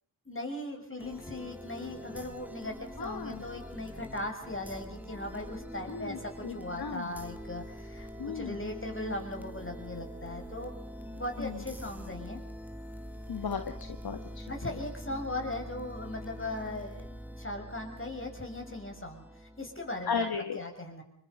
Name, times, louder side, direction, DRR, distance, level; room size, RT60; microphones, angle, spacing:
voice 1, 0.3-8.1 8.3-10.7 11.2-12.4 14.5-17.1 17.4-20.3 20.5-21.0, left 1 dB, 25° left, 3 dB, 6.8 m, -38 dB
sound 1, 1.0-20.2, equal, 5° right, 2.7 m, -44 dB
voice 2, 3.0-3.4 5.9-7.1 8.2-8.6 11.4-11.6 13.3-14.4 20.1-20.6, left 6 dB, 55° left, 8 dB, 1.6 m, -35 dB
24.5 x 22.5 x 5.5 m, 0.75 s
supercardioid pair, 40°, 45 cm